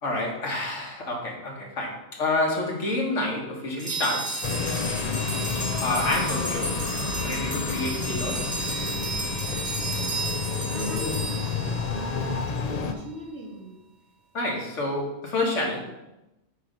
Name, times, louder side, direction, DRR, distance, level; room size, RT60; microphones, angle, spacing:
voice 1, 0.0-4.5 5.8-6.8 7.2-8.6 14.3-15.8, left 2 dB, 75° left, -1 dB, 1.8 m, -28 dB
sound 1, 3.8-12.3, right 2 dB, 45° right, 1.8 m, -33 dB
sound 2, 4.4-12.9, left 5 dB, 55° left, 0.4 m, -30 dB
voice 2, 10.0-13.9, right 1 dB, 65° right, -2 dB, 1.8 m, -41 dB
8.1 x 3.2 x 5.2 m, 0.93 s
omnidirectional pair, 1.3 m